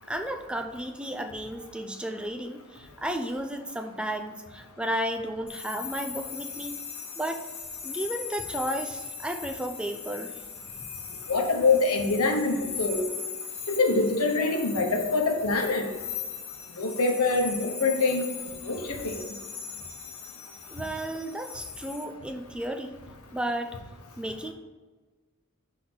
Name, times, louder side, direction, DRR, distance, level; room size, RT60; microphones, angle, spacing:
voice 1, 0.1-6.8 7.2-7.4 7.8-10.4 20.7-22.9 23.3-23.8 24.2-24.5, right 1 dB, 5° right, 5 dB, 0.3 m, -33 dB
sound 1, 5.5-22.0, left 6 dB, 25° left, 0.7 m, -39 dB
voice 2, 11.3-13.1 13.7-15.9 16.8-18.2 18.6-19.2, left 3 dB, 90° left, 3 dB, 1.0 m, -25 dB
6.1 x 3.6 x 5.5 m, 1.3 s
head